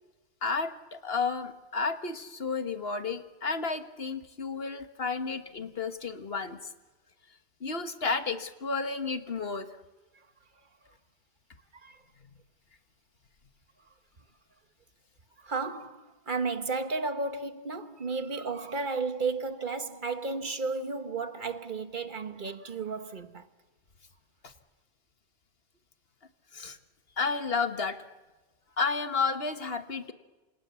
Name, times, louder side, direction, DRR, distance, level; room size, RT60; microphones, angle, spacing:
voice 1, 0.4-6.7 7.6-9.7 24.4-24.5 26.5-26.8 27.2-28.0 28.8-30.1, left 4 dB, 70° left, 1.8 m, -32 dB
voice 2, 15.4-23.5, right 4 dB, 55° right, 1.4 m, -33 dB
28.5 x 26.5 x 7.1 m
omnidirectional pair, 1.0 m